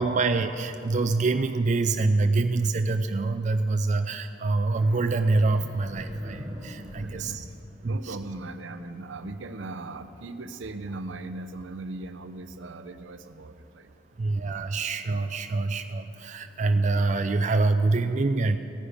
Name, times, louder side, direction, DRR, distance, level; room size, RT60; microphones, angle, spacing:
voice 1, 0.0-7.4 7.8-8.2 14.2-18.6, right 3 dB, 40° right, 8 dB, 0.4 m, -25 dB
sound 1, 4.8-8.2, equal, 15° right, 1.2 m, -41 dB
voice 2, 7.0-7.6 7.8-13.9, right 2 dB, 75° right, 10 dB, 0.7 m, -38 dB
16.0 x 9.6 x 5.1 m, 2.8 s
head